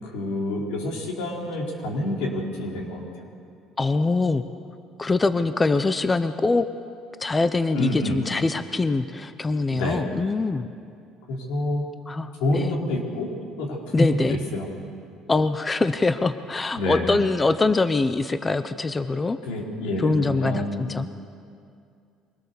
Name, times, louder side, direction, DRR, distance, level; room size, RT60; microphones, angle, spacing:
voice 1, 0.0-3.3 7.7-8.2 9.7-10.1 11.3-11.8 12.4-13.3 13.6-14.7 16.8-17.2 19.4-20.9, left 1 dB, 90° left, -1 dB, 4.3 m, -28 dB
voice 2, 3.8-4.4 5.0-6.7 7.2-10.7 12.1-12.8 13.9-14.4 15.3-19.4 20.0-21.2, left 3 dB, 20° left, 11 dB, 0.7 m, -23 dB
23.5 x 18.5 x 7.0 m, 2.4 s
cardioid pair, 110°, 0 cm